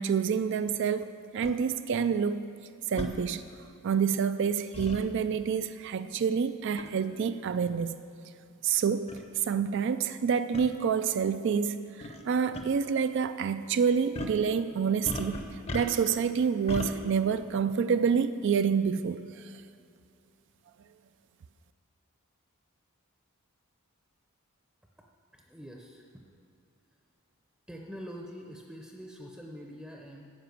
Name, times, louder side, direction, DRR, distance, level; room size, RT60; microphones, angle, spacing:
voice 1, 0.0-2.5 2.9-3.4 3.8-8.0 8.6-9.1 9.5-15.4 15.7-19.2, right 6 dB, 55° right, 11 dB, 0.3 m, -28 dB
sound 1, 1.4-1.5 3.0-3.1 4.7-5.0 6.8-7.0 7.8-7.9 8.7-8.8 9.1-9.2 10.5-10.7 12.0-12.2 12.5-12.6 14.1-14.4 15.0-16.2 16.7-16.9, left 1 dB, 30° left, 0.7 m, -36 dB
voice 2, 25.3-26.0 27.7-30.3, equal, 5° right, 0 dB, 0.6 m, -44 dB
9.5 x 6.0 x 8.1 m, 2.5 s
head